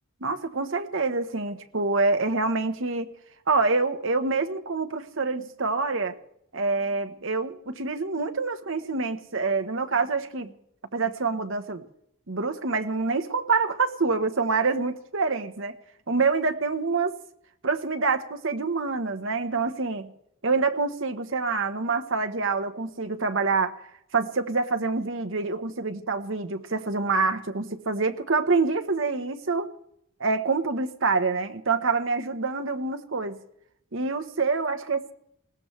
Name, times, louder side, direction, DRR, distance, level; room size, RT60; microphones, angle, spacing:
voice 1, 0.2-3.1 3.5-6.2 6.5-10.5 10.9-11.8 12.3-15.8 16.1-17.1 17.6-20.1 20.4-23.8 24.1-29.7 30.2-33.4 33.9-35.0, right 4 dB, 60° right, 8 dB, 1.2 m, -26 dB
20.0 x 17.5 x 3.3 m, 0.74 s
head